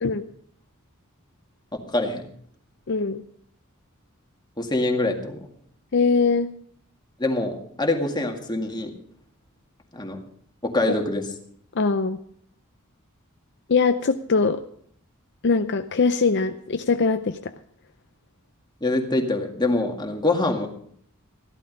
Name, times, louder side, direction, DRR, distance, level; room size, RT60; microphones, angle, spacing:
voice 1, 1.9-2.2 4.6-5.4 7.2-8.9 9.9-10.2 10.6-11.2 18.8-20.7, left 2 dB, 20° left, 3 dB, 2.0 m, -24 dB
voice 2, 2.9-3.3 5.9-6.5 11.7-12.2 13.7-14.6 15.4-17.5, left 4 dB, 55° left, 8 dB, 0.6 m, -22 dB
14.5 x 12.0 x 5.3 m, 0.62 s
head